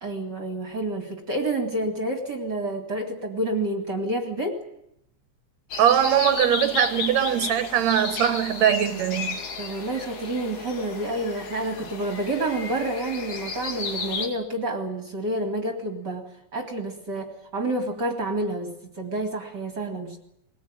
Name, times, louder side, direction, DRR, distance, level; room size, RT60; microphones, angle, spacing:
voice 1, 0.0-4.6 9.6-20.2, right 1 dB, 35° right, 2.5 m, -29 dB
sound 1, 5.7-14.3, left 4 dB, 80° left, 3.9 m, -33 dB
voice 2, 5.8-9.4, right 10 dB, 70° right, 2.4 m, -21 dB
21.5 x 19.5 x 8.9 m
omnidirectional pair, 3.4 m